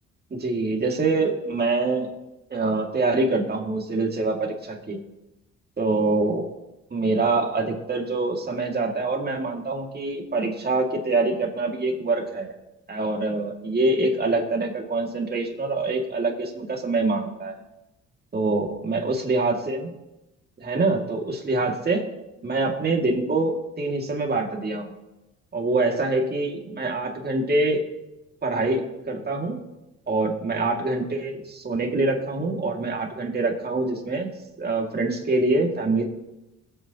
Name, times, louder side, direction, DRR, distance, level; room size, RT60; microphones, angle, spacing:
voice 1, 0.3-2.1 2.5-5.0 5.8-6.5 6.9-12.5 12.9-17.6 18.3-19.9 20.6-22.0 22.4-24.9 25.5-27.8 28.4-29.6 30.1-36.0, right 3 dB, 30° right, 1 dB, 2.4 m, -25 dB
22.0 x 8.4 x 3.0 m, 0.98 s
cardioid pair, 90°, 30 cm